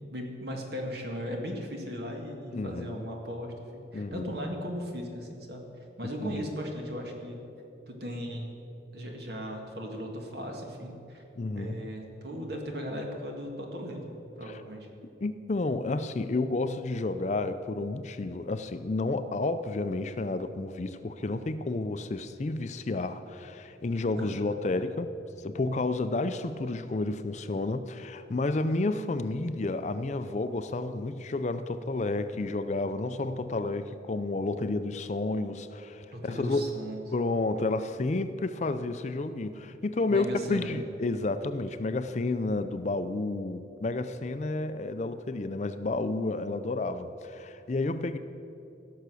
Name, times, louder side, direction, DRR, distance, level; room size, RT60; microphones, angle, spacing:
voice 1, 0.1-5.6 6.0-7.4 7.9-8.5 8.9-11.2 11.5-14.9 24.2-24.4 36.1-37.0 40.1-40.7, equal, 60° right, 2 dB, 1.8 m, -37 dB
voice 2, 2.5-3.0 3.9-4.3 6.2-6.4 11.4-11.9 15.2-25.1 25.4-36.8 37.1-48.2, left 2 dB, 40° left, 11 dB, 0.4 m, -31 dB
16.5 x 6.8 x 6.2 m, 2.8 s
head